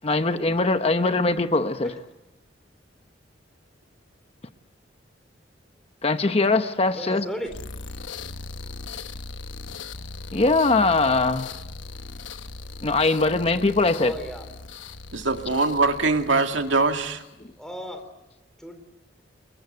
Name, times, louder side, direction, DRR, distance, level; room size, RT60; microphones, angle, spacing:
voice 1, 0.0-1.9 6.0-7.3 10.3-11.5 12.8-14.1, left 3 dB, 35° left, 9 dB, 1.0 m, -21 dB
voice 2, 6.9-7.5 14.0-14.5 17.6-18.0 18.6-18.8, equal, 5° left, 7 dB, 4.1 m, -35 dB
sound 1, 7.4-17.4, left 3 dB, 90° left, 1.1 m, -39 dB
voice 3, 15.1-17.2, right 3 dB, 85° right, 5 dB, 2.2 m, -22 dB
29.5 x 22.5 x 8.1 m, 0.98 s
head